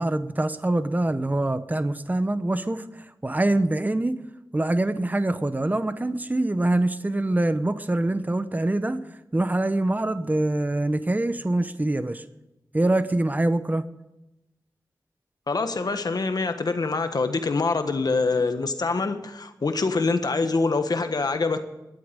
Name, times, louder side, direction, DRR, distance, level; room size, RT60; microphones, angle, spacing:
voice 1, 0.0-4.2 4.5-9.0 9.3-12.2 12.7-13.8, right 2 dB, 25° right, 0.9 m, -24 dB
voice 2, 15.5-21.6, left 3 dB, 65° left, 1.4 m, -25 dB
11.5 x 8.6 x 9.8 m
cardioid pair, 50°, 7 cm